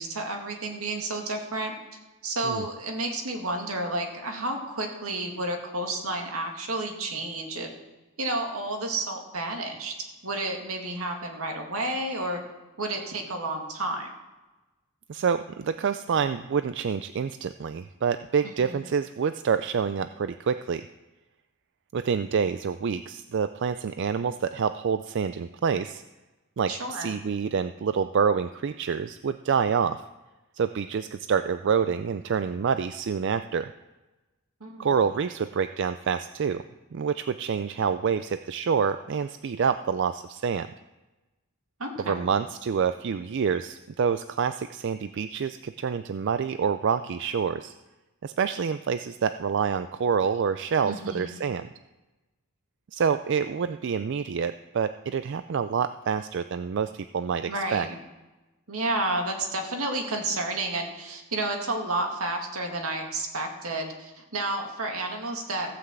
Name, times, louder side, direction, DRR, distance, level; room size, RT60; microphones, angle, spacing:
voice 1, 0.0-1.7 2.2-7.7 8.2-9.9 10.2-12.4 12.8-14.1 18.6-18.8 26.7-27.2 34.6-34.9 41.8-42.2 50.8-51.4 57.5-57.9 58.7-65.7, right 2 dB, 80° right, 3 dB, 2.2 m, -31 dB
voice 2, 15.1-20.8 21.9-26.0 26.6-30.0 30.5-33.7 34.8-36.6 36.9-40.7 42.1-47.7 48.2-51.7 52.9-57.9, right 6 dB, 55° right, 11 dB, 0.4 m, -27 dB
15.5 x 5.9 x 7.8 m, 1.1 s
head